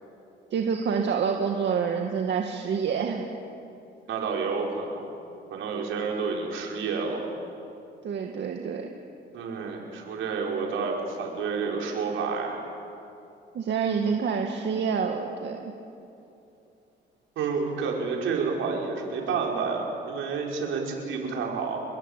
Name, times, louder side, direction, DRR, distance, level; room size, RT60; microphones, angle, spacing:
voice 1, 0.5-3.2 8.0-8.9 13.5-15.7, right 6 dB, 65° right, 2 dB, 2.1 m, -27 dB
voice 2, 4.1-5.1 5.5-7.2 9.3-12.6 17.4-21.8, right 5 dB, 85° right, 0 dB, 5.7 m, -29 dB
29.0 x 22.0 x 8.5 m, 2.8 s
cardioid pair, 90°, 20 cm